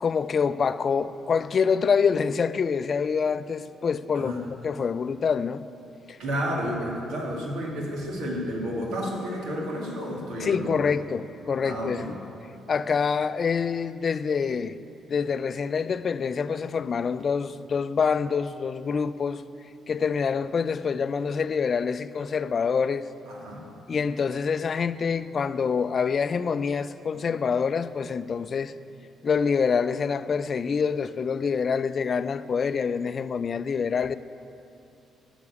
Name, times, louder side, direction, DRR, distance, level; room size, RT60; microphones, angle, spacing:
voice 1, 0.0-5.6 6.1-6.2 10.4-12.2 12.7-14.7 15.1-19.4 19.9-23.1 23.9-28.7 29.2-34.1, left 6 dB, 45° left, 0.4 m, -26 dB
voice 2, 6.2-10.9 11.6-12.1 23.3-23.6, equal, 90° right, 2.4 m, -31 dB
12.0 x 6.0 x 8.3 m
cardioid pair, 90°, 0 cm